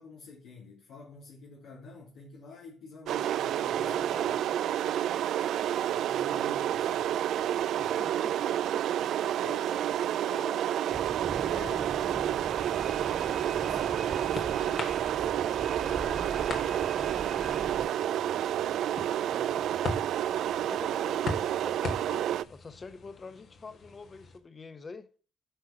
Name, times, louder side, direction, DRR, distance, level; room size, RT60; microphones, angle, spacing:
voice 1, 0.0-4.5 4.8-5.1 5.8-7.2 11.4-18.4, left 3 dB, 85° left, 2.9 m, -50 dB
sound 1, 3.1-22.4, right 11 dB, 75° right, 0.4 m, -29 dB
voice 2, 3.8-4.4 7.8-8.9 9.2-10.7 19.3-20.0 20.7-25.1, left 4 dB, 35° left, 1.1 m, -47 dB
sound 2, 10.9-17.9, right 3 dB, 30° right, 0.7 m, -41 dB
sound 3, 13.6-24.4, left 3 dB, 60° left, 1.8 m, -42 dB
9.1 x 4.9 x 5.8 m
cardioid pair, 90°, 0 cm